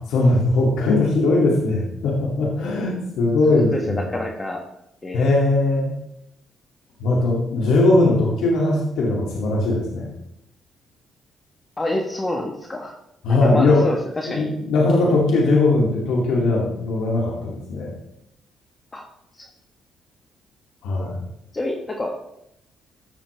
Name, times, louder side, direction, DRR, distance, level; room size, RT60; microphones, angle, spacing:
voice 1, 0.1-4.1 5.1-5.9 7.0-10.1 13.2-14.0 14.2-17.9 20.8-21.2, left 2 dB, 85° left, -3 dB, 2.5 m, -19 dB
voice 2, 3.5-4.6 5.0-5.4 11.8-12.9 13.3-14.5 18.9-19.0 19.3-19.5 21.5-22.2, left 1 dB, 25° left, 1 dB, 1.3 m, -28 dB
15.0 x 6.7 x 3.4 m, 0.80 s
cardioid pair, 90°, 0 cm